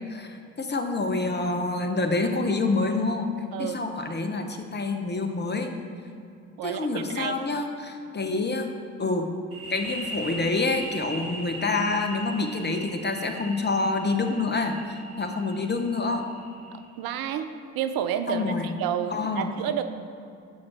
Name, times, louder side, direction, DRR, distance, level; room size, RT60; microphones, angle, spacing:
voice 1, 0.1-3.3 3.6-5.7 6.6-8.7 9.0-9.3 9.7-16.2 18.3-18.7 19.1-19.6, left 3 dB, 25° left, 5 dB, 1.0 m, -27 dB
voice 2, 6.6-7.4 15.2-15.3 16.7-17.5 17.7-19.8, right 9 dB, 60° right, 9 dB, 0.6 m, -30 dB
sound 1, 9.5-17.0, right 1 dB, 35° right, 2.2 m, -39 dB
13.0 x 4.9 x 4.4 m, 2.5 s
hypercardioid pair, 45°, 41 cm